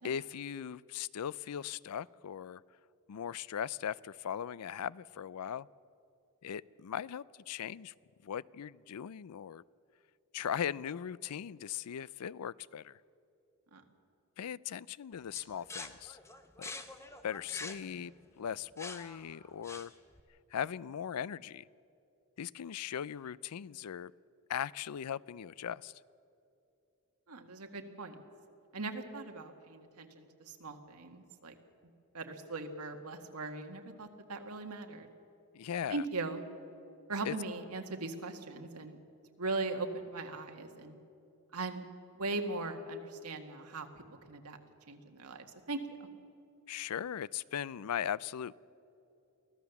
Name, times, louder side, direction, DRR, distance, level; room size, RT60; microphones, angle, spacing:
voice 1, 0.0-2.6 3.1-5.7 6.4-7.9 8.2-9.6 10.3-13.0 14.4-16.2 16.6-16.7 17.2-19.9 20.5-21.6 22.4-24.1 24.5-26.0 35.5-36.0 37.3-37.4 46.7-48.6, left 9 dB, 90° left, 21 dB, 0.4 m, -39 dB
sound 1, 15.4-20.2, left 3 dB, 10° left, 0.9 m, -46 dB
voice 2, 27.3-28.2 28.7-31.6 32.1-35.1 35.9-36.4 37.1-39.0 39.4-41.0 41.5-41.8 42.2-44.6 44.9-46.0, right 3 dB, 85° right, 5 dB, 1.8 m, -39 dB
24.0 x 16.0 x 7.1 m, 2.8 s
head